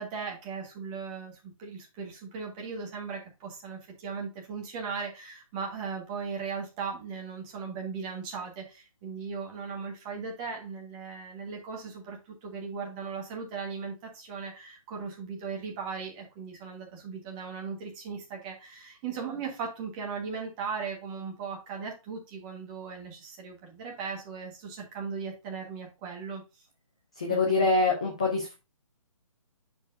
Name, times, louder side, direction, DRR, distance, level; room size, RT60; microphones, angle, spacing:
voice 1, 0.0-1.3 1.6-26.4 27.3-27.7, right 5 dB, 15° right, 0 dB, 1.4 m, -38 dB
voice 2, 27.1-28.5, left 3 dB, 10° left, -1 dB, 0.3 m, -25 dB
10.0 x 4.6 x 2.6 m, 0.27 s
hypercardioid pair, 170°, 18 cm